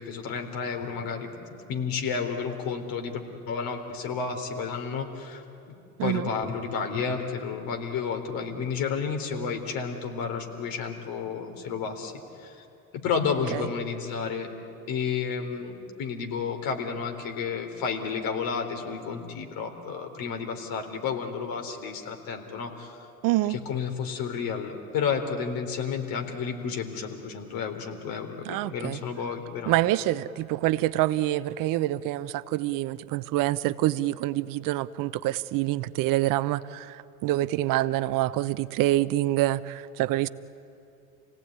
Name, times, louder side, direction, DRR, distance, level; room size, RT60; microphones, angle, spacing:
voice 1, 0.0-1.3 1.7-3.2 3.5-5.4 6.0-12.6 13.0-14.5 14.9-23.1 23.5-29.7, left 6 dB, 50° left, 4 dB, 3.9 m, -31 dB
voice 2, 6.0-6.3 13.5-13.7 23.2-23.6 28.4-29.0 29.7-40.3, right 15 dB, 50° right, 16 dB, 0.9 m, -26 dB
29.0 x 17.5 x 9.5 m, 2.6 s
hypercardioid pair, 75°, 43 cm